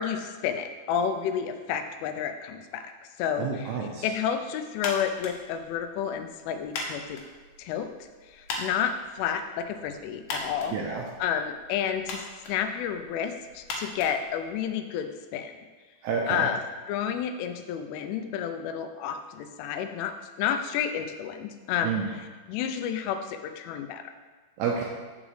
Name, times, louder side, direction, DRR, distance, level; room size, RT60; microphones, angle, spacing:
voice 1, 0.0-2.9 3.2-3.7 4.0-7.2 7.6-10.8 11.2-12.2 12.5-15.5 16.3-16.6 16.9-22.0 22.5-24.0, left 8 dB, 85° left, 7 dB, 3.1 m, -30 dB
voice 2, 3.4-4.1 10.7-11.1 16.0-16.5 21.8-22.1 24.6-24.8, right 6 dB, 85° right, -1 dB, 2.4 m, -29 dB
sound 1, 4.8-15.0, left 2 dB, 70° left, 2.5 m, -40 dB
14.0 x 5.0 x 3.2 m, 1.4 s
omnidirectional pair, 5.5 m